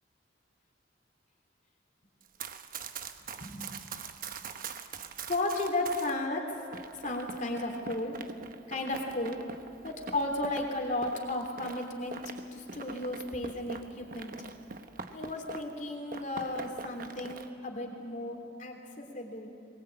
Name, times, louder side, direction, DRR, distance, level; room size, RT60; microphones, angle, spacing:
Run, 2.2-6.2 6.7-15.8 16.1-17.5, right 4 dB, 50° right, 1.1 m, -43 dB
voice 1, 3.4-4.0 5.3-6.7 7.0-8.2 8.7-9.5 9.8-14.3 15.1-19.5, left 2 dB, 45° left, 2 dB, 3.2 m, -34 dB
22.0 x 21.0 x 8.9 m, 2.5 s
head